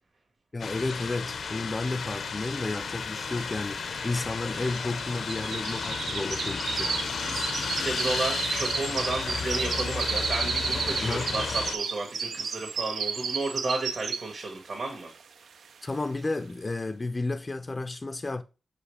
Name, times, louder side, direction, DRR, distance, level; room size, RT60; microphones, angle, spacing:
voice 1, 0.5-7.0 11.0-11.3 15.8-18.4, left 2 dB, 25° left, 0.4 m, -32 dB
sound 1, 0.6-11.8, left 5 dB, 80° left, 0.7 m, -33 dB
sound 2, 2.8-2.9 3.0-14.5 14.9-15.2 15.6-15.7, right 6 dB, 90° right, 0.5 m, -33 dB
voice 2, 7.2-15.1, right 3 dB, 55° right, 1.6 m, -33 dB
6.2 x 5.0 x 3.3 m
wide cardioid pair, 120°, 0 cm